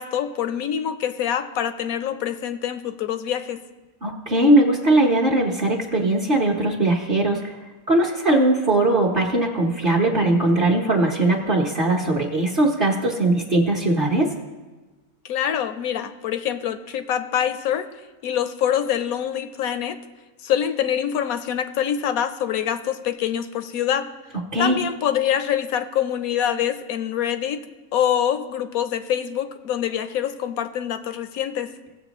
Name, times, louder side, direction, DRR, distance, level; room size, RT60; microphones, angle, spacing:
voice 1, 0.0-3.6 15.2-17.9 18.2-20.0 20.4-24.1 24.6-27.6 27.9-31.7, left 9 dB, 70° left, 10 dB, 1.0 m, -25 dB
voice 2, 4.0-7.5 7.9-14.3 24.5-24.8, right 2 dB, 40° right, -2 dB, 1.1 m, -20 dB
17.5 x 7.4 x 3.0 m, 1.2 s
omnidirectional pair, 1.7 m